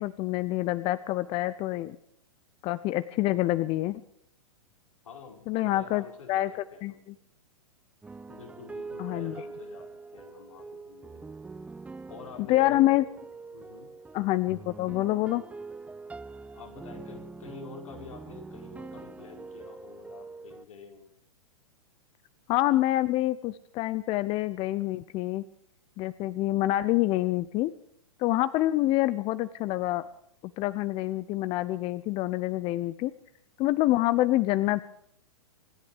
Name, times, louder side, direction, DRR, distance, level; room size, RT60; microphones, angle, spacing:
voice 1, 0.0-2.0 2.6-4.0 5.5-6.5 6.8-6.9 9.0-9.3 12.5-13.0 14.1-15.4 22.5-25.4 26.0-27.7 28.2-30.1 30.6-33.1 33.6-34.8, left 16 dB, 35° left, 16 dB, 0.7 m, -26 dB
voice 2, 5.0-7.0 8.3-11.3 12.1-12.8 13.5-13.9 16.5-21.1, left 5 dB, 80° left, 1 dB, 5.2 m, -48 dB
sound 1, 8.0-20.6, right 3 dB, 10° right, 0.7 m, -44 dB
25.5 x 10.5 x 4.9 m, 0.70 s
hypercardioid pair, 115°, 17 cm